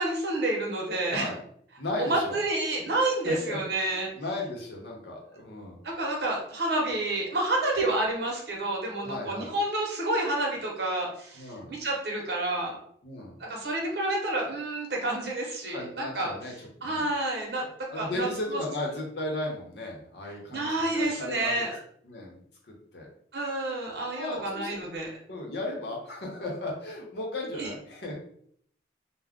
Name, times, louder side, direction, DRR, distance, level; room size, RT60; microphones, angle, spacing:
voice 1, 0.0-1.3 2.0-4.1 5.8-12.8 13.4-16.3 16.8-17.7 18.0-18.3 18.5-18.6 20.5-21.7 23.3-25.1 27.6-27.7, right 2 dB, 60° right, -1 dB, 0.9 m, -29 dB
voice 2, 1.8-2.4 3.2-5.8 9.0-9.5 11.3-11.7 13.0-13.3 15.7-17.0 17.9-21.7 22.0-23.1 24.1-24.9 25.3-28.1, left 2 dB, 65° left, -1 dB, 0.8 m, -36 dB
2.3 x 2.1 x 3.5 m, 0.64 s
head